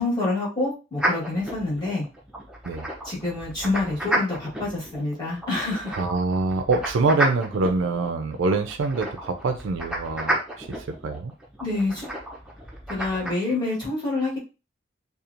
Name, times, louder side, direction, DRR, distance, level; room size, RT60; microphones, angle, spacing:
voice 1, 0.0-2.1 3.0-6.0 11.6-12.1 12.9-14.4, left 2 dB, 25° left, -6 dB, 1.3 m, -27 dB
sound 1, 1.0-13.3, right 1 dB, 5° right, 0.5 m, -32 dB
voice 2, 6.0-11.3, right 3 dB, 75° right, 6 dB, 0.4 m, -25 dB
2.9 x 2.3 x 2.5 m, 0.31 s
head